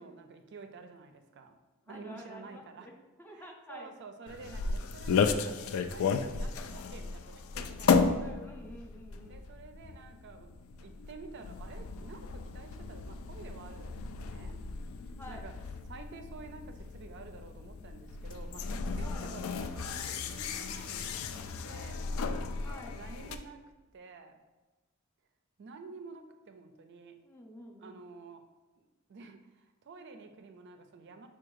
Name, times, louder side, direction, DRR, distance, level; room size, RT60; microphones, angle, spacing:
voice 1, 0.0-1.6 1.9-2.9 3.3-8.1 9.3-10.5 10.8-14.5 15.3-21.1 21.3-22.0 22.9-23.6 23.9-24.4 25.6-27.1 27.8-28.4 28.8-28.9 29.1-31.3, right 4 dB, 55° right, 6 dB, 0.4 m, -50 dB
voice 2, 1.9-3.9 8.1-9.4 15.2-15.5 19.0-19.3 22.6-23.0 27.2-28.0, left 1 dB, 10° left, 1 dB, 0.4 m, -49 dB
sound 1, 4.3-23.4, left 5 dB, 70° left, 0.3 m, -34 dB
4.7 x 2.3 x 4.6 m, 1.2 s
head